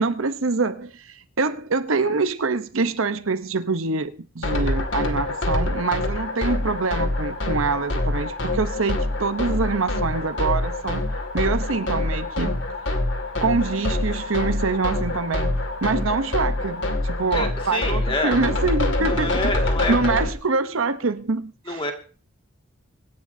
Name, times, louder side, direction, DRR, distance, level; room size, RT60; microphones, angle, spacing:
voice 1, 0.0-11.0 11.3-12.6 13.4-19.5 19.9-21.8, right 4 dB, 75° right, 0.9 m, -25 dB
sound 1, 4.4-20.3, left 2 dB, 60° left, 2.2 m, -25 dB
voice 2, 17.3-18.4 19.1-20.0 21.7-21.9, left 2 dB, 25° left, 2.1 m, -27 dB
25.5 x 10.5 x 2.7 m
head